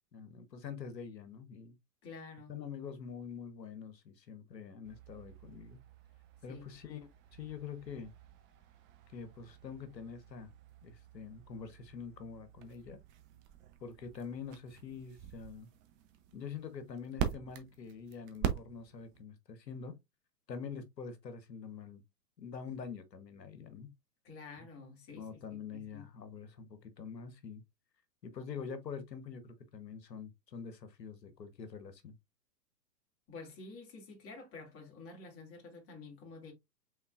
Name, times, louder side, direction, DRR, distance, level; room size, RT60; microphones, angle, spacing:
voice 1, 0.1-1.8 2.5-5.8 6.4-8.1 9.1-10.5 10.8-13.0 13.8-15.7 16.3-20.0 20.5-22.0 22.4-23.9 25.1-27.6 28.2-32.2, left 6 dB, 80° left, 1.2 m, -45 dB
voice 2, 2.0-2.6 6.5-6.7 24.2-26.1 33.3-36.5, left 4 dB, 25° left, 2.3 m, -50 dB
sound 1, 4.8-19.2, right 9 dB, 25° right, 0.7 m, -44 dB
5.6 x 3.7 x 2.4 m
figure-of-eight pair, 110°, 49 cm